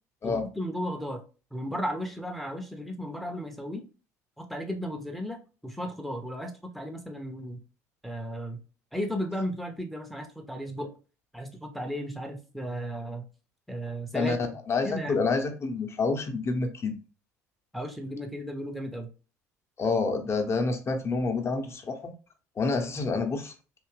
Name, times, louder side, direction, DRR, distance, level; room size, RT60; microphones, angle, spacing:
voice 1, 0.2-1.2 1.5-3.8 4.4-7.6 8.0-8.6 8.9-10.9 11.3-13.3 13.7-14.4 14.8-15.2 17.7-19.1, equal, ahead, 4 dB, 0.7 m, -35 dB
voice 2, 14.7-16.9 19.8-22.1 22.6-23.5, left 4 dB, 30° left, 5 dB, 0.8 m, -28 dB
3.4 x 2.8 x 3.2 m, 0.35 s
hypercardioid pair, 65°, 9 cm